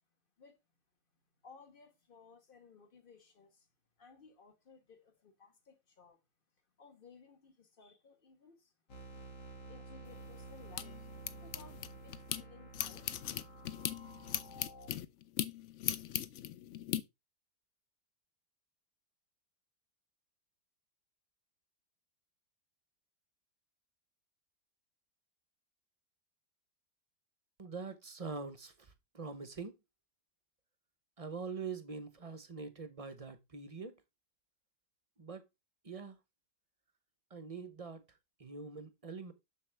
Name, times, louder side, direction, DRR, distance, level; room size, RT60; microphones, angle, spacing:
voice 1, 1.4-3.7 4.0-6.2 6.8-8.7 9.7-11.1 11.4-13.2, left 5 dB, 35° left, 1.4 m, -59 dB
sound 1, 8.9-14.9, right 2 dB, 85° left, 2.4 m, -51 dB
sound 2, 10.1-12.4 12.7-17.0, left 11 dB, 70° left, 0.7 m, -39 dB
voice 2, 27.6-29.8 31.2-34.0 35.2-35.5 35.8-36.2 37.3-39.3, right 4 dB, 40° right, 0.5 m, -44 dB
7.3 x 6.6 x 3.3 m
omnidirectional pair, 1.8 m